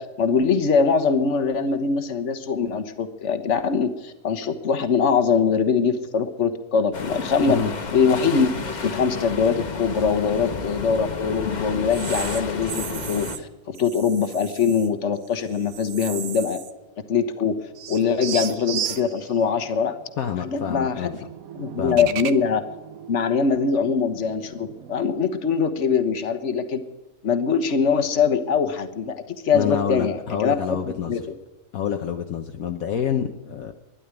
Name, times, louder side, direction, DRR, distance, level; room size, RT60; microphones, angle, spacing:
voice 1, 0.0-7.6 7.9-16.6 17.1-19.9 20.4-21.1 21.5-22.6 23.1-26.8 27.2-31.2, left 6 dB, 50° left, 8 dB, 1.5 m, -23 dB
sound 1, 6.9-13.4, left 4 dB, 35° left, 1.0 m, -31 dB
sound 2, 11.9-13.4 13.7-14.9 15.2-16.9 17.1-17.2 17.8-25.2, right 9 dB, 70° right, 1.2 m, -36 dB
voice 2, 20.2-21.1 21.8-22.1 29.5-31.1 31.7-33.7, left 8 dB, 70° left, 5 dB, 1.3 m, -27 dB
13.0 x 11.0 x 9.7 m, 1.1 s
omnidirectional pair, 1.6 m